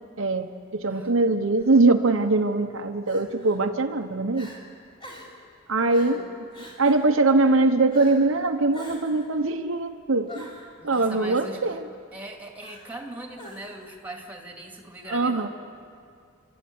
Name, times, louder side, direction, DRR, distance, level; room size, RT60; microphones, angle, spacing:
voice 1, 0.2-4.5 5.7-6.3 6.8-10.5 10.8-11.8 15.1-15.5, right 3 dB, 65° right, 5 dB, 0.9 m, -22 dB
Crying sobbing, 1.5-1.8 3.1-3.6 4.0-4.1 4.3-4.6 5.0-5.4 5.9-6.2 6.5-7.1 7.9-8.3 8.7-9.3 10.3-11.2 12.6-13.0 13.4-13.9, left 1 dB, 25° left, 3.5 m, -45 dB
voice 2, 5.9-6.4 10.8-11.8 12.1-15.5, right 1 dB, 10° right, 1 dB, 2.4 m, -40 dB
29.5 x 13.0 x 9.4 m, 2.3 s
head